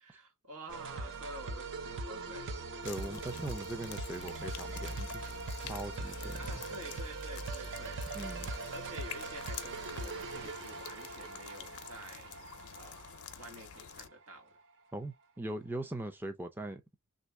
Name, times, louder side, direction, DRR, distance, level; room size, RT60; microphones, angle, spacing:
voice 1, 0.0-2.5 6.4-8.0 8.7-12.3 12.8-14.5, right 1 dB, 85° right, 1.6 m, -49 dB
sound 1, 0.7-14.1, right 3 dB, 55° right, 0.6 m, -41 dB
sound 2, 2.8-14.1, left 9 dB, 70° left, 0.5 m, -49 dB
voice 2, 2.8-5.2 5.6-6.6 8.1-8.5 14.9-16.8, right 1 dB, 10° right, 0.4 m, -41 dB
3.2 x 2.6 x 3.1 m
head